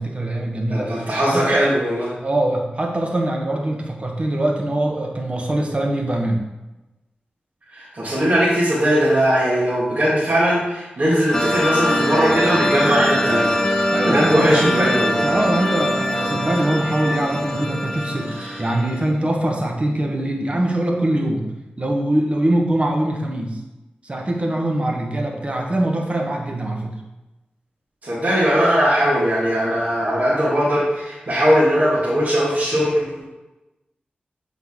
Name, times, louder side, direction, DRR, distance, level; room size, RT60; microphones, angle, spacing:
voice 1, 0.0-1.0 1.2-1.6 2.2-6.4 13.9-18.3 18.6-21.5 21.8-23.6 24.0-27.0, right 1 dB, 35° right, 1 dB, 1.1 m, -22 dB
voice 2, 0.7-2.1 7.7-13.6 14.0-15.1 18.4-18.6 28.0-33.2, equal, 50° right, -8 dB, 1.7 m, -19 dB
sound 1, 11.3-19.1, left 1 dB, 20° left, 1.0 m, -22 dB
7.8 x 3.9 x 3.6 m, 1.0 s
wide cardioid pair, 70°, 3 cm